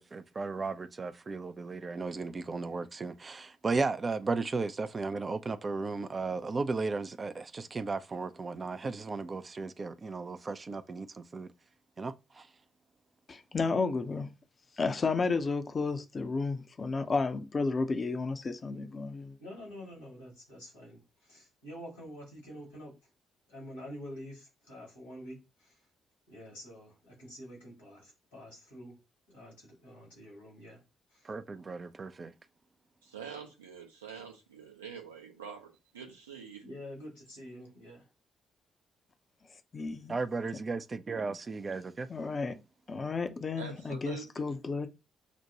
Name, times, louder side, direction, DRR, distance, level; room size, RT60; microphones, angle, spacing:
voice 1, 0.0-11.5 12.0-12.5 31.2-32.3 40.1-42.1, right 4 dB, 35° right, 0.4 m, -35 dB
voice 2, 13.3-14.3 14.8-19.4 39.7-40.2 42.1-42.6 42.9-44.9, left 4 dB, 40° left, 0.6 m, -32 dB
voice 3, 19.4-23.0 23.5-25.8 26.3-29.0 29.3-30.8 31.1-31.3 36.6-38.1, equal, 80° left, 2.0 m, -47 dB
voice 4, 33.0-36.6 43.6-44.5, right 7 dB, 85° right, 0.7 m, -45 dB
6.0 x 2.1 x 2.8 m
figure-of-eight pair, 40°, 0 cm